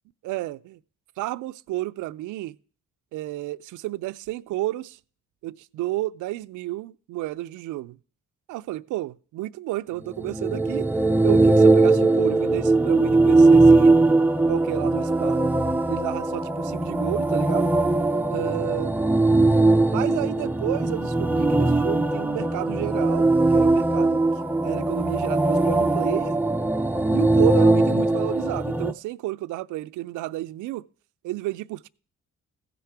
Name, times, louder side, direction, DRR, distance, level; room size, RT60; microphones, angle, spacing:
voice 1, 0.2-0.8 1.2-2.6 3.1-5.0 5.4-8.0 8.5-10.9 11.2-14.1 14.5-15.5 15.9-17.7 18.3-18.9 19.9-24.2 24.6-26.3 27.1-30.9 31.2-31.9, right 17 dB, 80° right, 0.5 m, -31 dB
sound 1, 10.1-28.9, right 2 dB, 5° right, 0.4 m, -20 dB
16.0 x 6.8 x 4.7 m
cardioid pair, 90°, 30 cm